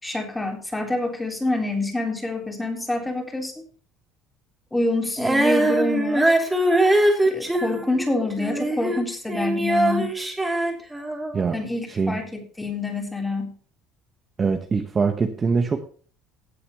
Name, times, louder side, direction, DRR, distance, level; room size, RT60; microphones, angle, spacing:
voice 1, 0.0-3.5 4.7-6.3 7.2-10.1 11.5-13.6, left 2 dB, 10° left, 3 dB, 3.4 m, -27 dB
Female singing, 5.2-9.0 9.3-11.4, right 1 dB, 5° right, 2.9 m, -22 dB
voice 2, 11.9-12.2 14.4-15.8, right 5 dB, 25° right, 6 dB, 1.2 m, -23 dB
17.0 x 8.3 x 3.0 m, 0.42 s
cardioid pair, 130°, 0 cm